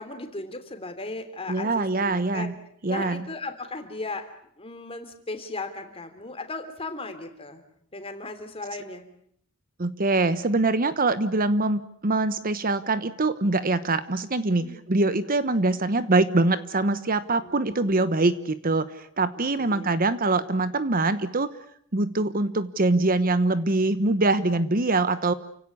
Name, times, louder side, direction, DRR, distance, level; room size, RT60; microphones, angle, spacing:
voice 1, 0.0-2.6 2.9-4.3 4.6-7.6 7.9-9.0 14.6-14.8 17.4-18.0 19.6-19.9, left 3 dB, 25° left, 7 dB, 3.2 m, -36 dB
voice 2, 1.5-2.5 2.8-3.3 9.8-21.5 21.9-25.3, right 2 dB, 40° right, 14 dB, 1.0 m, -24 dB
29.5 x 17.0 x 9.7 m, 0.67 s
head